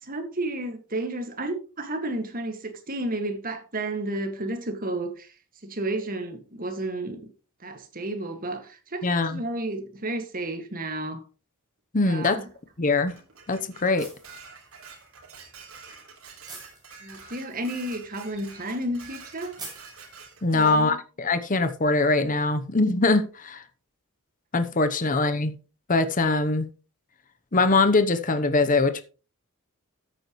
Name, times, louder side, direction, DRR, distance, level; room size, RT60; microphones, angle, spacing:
voice 1, 0.0-5.3 5.6-7.3 7.6-11.2 12.0-12.4 17.0-19.5 20.5-21.0, right 1 dB, 40° right, 1.9 m, -32 dB
voice 2, 9.0-9.4 11.9-12.4 12.8-13.2 13.5-14.1 20.4-23.6 24.5-25.6 25.9-26.7 27.5-29.0, left 3 dB, 40° left, 0.9 m, -22 dB
sound 1, 12.2-20.8, right 3 dB, 20° right, 5.7 m, -50 dB
Dishes pots and pans, 13.1-20.8, right 5 dB, 75° right, 3.6 m, -47 dB
13.5 x 8.9 x 3.1 m
head